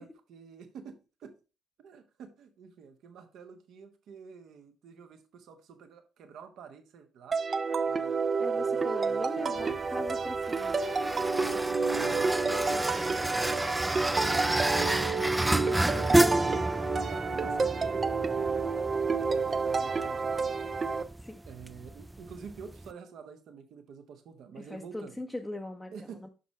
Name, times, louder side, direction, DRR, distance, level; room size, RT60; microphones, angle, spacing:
voice 1, 0.0-1.3 1.8-7.4 7.8-8.3 8.7-10.0 12.0-14.7 15.2-16.2 16.7-18.9 19.2-20.7 21.5-25.2 25.9-26.2, right 6 dB, 55° right, 1.2 m, -49 dB
sound 1, 7.3-21.0, right 4 dB, 35° right, 0.7 m, -30 dB
voice 2, 8.4-10.7 11.5-11.7 12.7-13.2 15.0-15.3 21.2-21.4 24.6-26.3, left 1 dB, 10° left, 0.8 m, -41 dB
sound 2, 9.6-22.9, right 1 dB, 10° right, 0.3 m, -31 dB
6.6 x 6.4 x 3.2 m
figure-of-eight pair, 45°, 0 cm